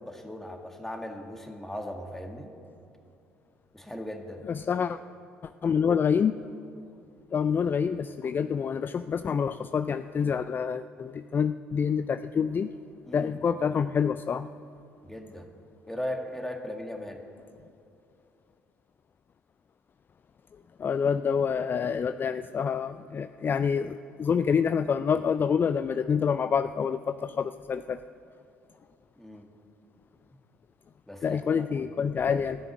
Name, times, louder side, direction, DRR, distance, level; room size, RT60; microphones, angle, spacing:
voice 1, 0.0-2.5 3.7-4.5 13.1-13.4 15.0-15.5 15.8-17.2 29.2-29.5 31.1-31.8 32.2-32.5, left 1 dB, 5° left, 4 dB, 1.9 m, -38 dB
voice 2, 4.5-5.0 5.6-6.4 7.3-12.7 13.1-14.5 20.8-28.0 31.2-32.6, left 6 dB, 35° left, 12 dB, 0.4 m, -27 dB
13.0 x 7.1 x 9.6 m, 2.6 s
hypercardioid pair, 55°, 6 cm